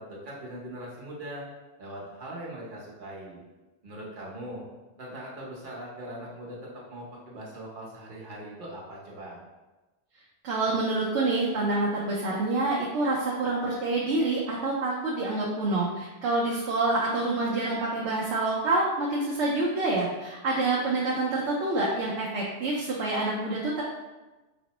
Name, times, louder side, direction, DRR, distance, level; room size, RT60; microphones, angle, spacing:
voice 1, 0.0-1.4 1.8-3.4 3.8-4.6 5.0-9.4, right 1 dB, 50° right, -5 dB, 1.0 m, -41 dB
voice 2, 10.4-23.8, right 2 dB, 90° right, -4 dB, 0.9 m, -27 dB
5.1 x 2.0 x 2.9 m, 1.1 s
omnidirectional pair, 1.1 m